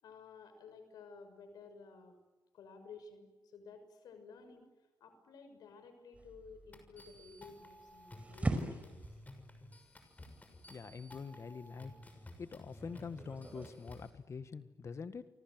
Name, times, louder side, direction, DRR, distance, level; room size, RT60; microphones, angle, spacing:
voice 1, 0.0-2.2 2.5-4.7 5.0-9.0, left 5 dB, 80° left, 8 dB, 6.2 m, -54 dB
sound 1, 6.1-13.7, right 2 dB, 20° right, 5.4 m, -43 dB
sound 2, 6.7-14.1, left 1 dB, 25° left, 6.5 m, -54 dB
voice 2, 10.7-11.9 12.4-15.3, left 5 dB, 45° left, 11 dB, 1.8 m, -45 dB
29.0 x 25.0 x 7.9 m, 1.1 s
cardioid pair, 75°, 7 cm